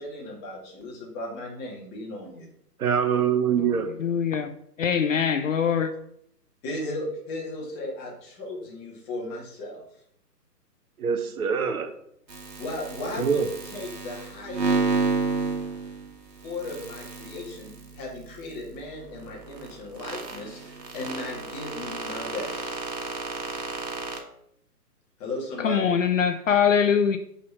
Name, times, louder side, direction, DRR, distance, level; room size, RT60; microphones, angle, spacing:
voice 1, 0.0-2.5 6.6-9.8 12.6-13.4 13.7-14.7 16.4-22.7 25.2-25.9, left 2 dB, 20° left, -2 dB, 2.0 m, -36 dB
voice 2, 2.8-3.9 11.0-11.9 13.2-13.4, right 7 dB, 60° right, 7 dB, 1.1 m, -24 dB
voice 3, 4.0-4.5 4.8-5.9 25.6-27.2, left 7 dB, 50° left, 8 dB, 0.6 m, -22 dB
sound 1, 12.3-24.2, right 4 dB, 90° right, 1.7 m, -32 dB
5.5 x 5.0 x 5.5 m, 0.70 s
figure-of-eight pair, 140°, 49 cm